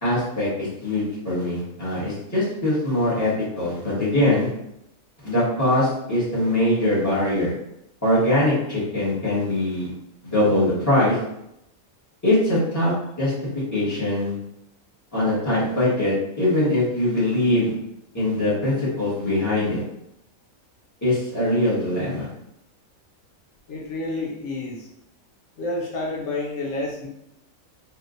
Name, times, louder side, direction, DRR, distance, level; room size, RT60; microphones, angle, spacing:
voice 1, 0.0-4.5 5.2-7.5 8.0-9.9 10.2-11.2 12.2-13.3 13.7-14.3 15.1-17.7 18.1-19.8 21.0-22.3, left 1 dB, 10° left, -11 dB, 1.5 m, -22 dB
voice 2, 23.7-24.9 25.6-27.1, left 2 dB, 70° left, -3 dB, 0.9 m, -29 dB
3.4 x 2.5 x 2.5 m, 0.80 s
omnidirectional pair, 1.5 m